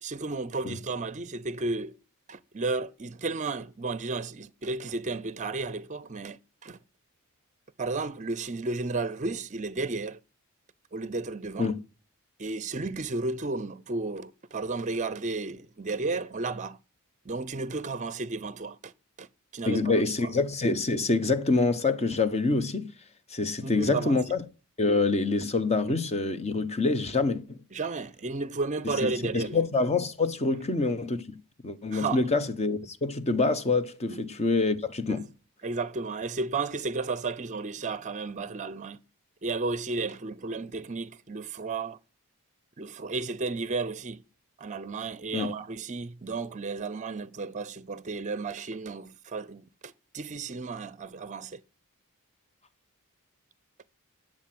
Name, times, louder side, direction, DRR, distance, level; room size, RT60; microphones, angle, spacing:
voice 1, 0.0-1.9 2.3-6.8 7.8-10.2 10.9-11.8 12.4-16.8 17.2-18.9 19.2-19.3 19.5-20.4 23.6-24.2 27.7-29.7 31.9-32.3 34.1-34.2 35.1-35.2 35.6-39.0 39.4-42.0 42.8-44.2 44.6-51.6 53.8-53.9, right 3 dB, 35° right, 0.6 m, -33 dB
voice 2, 19.7-22.9 23.3-24.4 24.8-27.6 29.0-31.4 31.6-35.2 45.3-45.5, left 3 dB, 30° left, 1.0 m, -26 dB
12.0 x 7.6 x 7.8 m
head